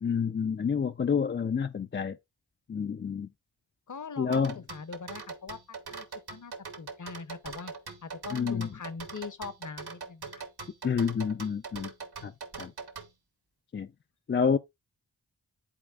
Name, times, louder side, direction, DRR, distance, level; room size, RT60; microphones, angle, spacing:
voice 1, 0.0-2.2 2.7-3.3 4.2-4.5 8.3-8.7 10.8-11.9 12.2-12.3 12.6-12.7 13.7-13.9 14.3-14.6, left 6 dB, 30° left, 0.4 m, -28 dB
voice 2, 3.9-7.7 8.0-10.4, left 5 dB, 45° left, 0.8 m, -42 dB
sound 1, 4.3-13.1, right 4 dB, 65° right, 1.3 m, -41 dB
11.0 x 4.1 x 2.4 m
cardioid pair, 50°, 42 cm